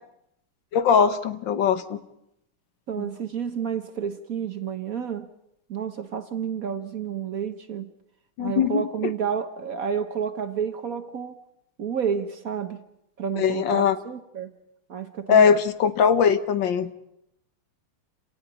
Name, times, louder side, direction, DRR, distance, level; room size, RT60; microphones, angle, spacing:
voice 1, 0.7-2.0 3.0-3.1 8.4-8.9 13.4-14.0 15.3-16.9, left 7 dB, 65° left, 1.7 m, -20 dB
voice 2, 2.9-5.3 5.7-7.9 8.4-11.4 11.8-12.8 13.2-14.5 14.9-15.6, right 7 dB, 50° right, 1.1 m, -30 dB
29.5 x 18.5 x 5.3 m
omnidirectional pair, 2.4 m